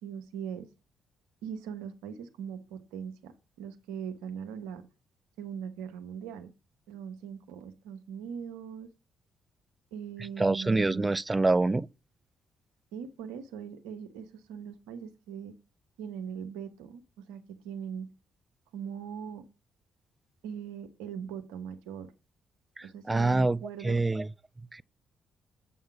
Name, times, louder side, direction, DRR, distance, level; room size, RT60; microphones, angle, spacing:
voice 1, 0.0-0.7 1.4-4.8 5.4-6.5 6.9-8.9 9.9-11.1 12.9-15.6 16.0-18.1 18.7-19.5 20.4-22.1 22.8-24.0, right 7 dB, 75° right, 0.9 m, -40 dB
voice 2, 10.4-11.9 22.8-23.6 23.8-24.3 24.7-24.8, right 2 dB, 25° right, 0.4 m, -26 dB
7.8 x 5.5 x 5.9 m
hypercardioid pair, 45°, 0 cm